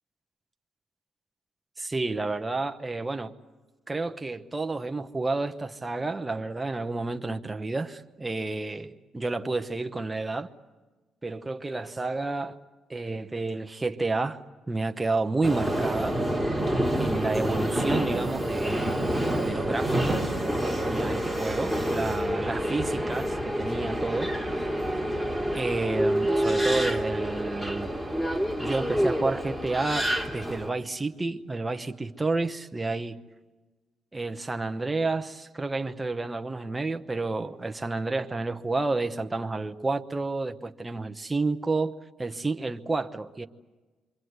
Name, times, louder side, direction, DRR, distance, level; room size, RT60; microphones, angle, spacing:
voice 1, 1.8-3.3 3.9-10.5 11.2-12.6 12.9-14.4 14.7-16.2 16.9-19.0 19.4-20.3 20.6-24.3 25.5-27.9 28.6-33.2 34.1-43.5, right 3 dB, 15° right, 1.0 m, -30 dB
Subway metro underground, 15.4-30.7, right 1 dB, 5° left, 2.8 m, -27 dB
27.5 x 24.0 x 8.1 m
cardioid pair, 90°, 0 cm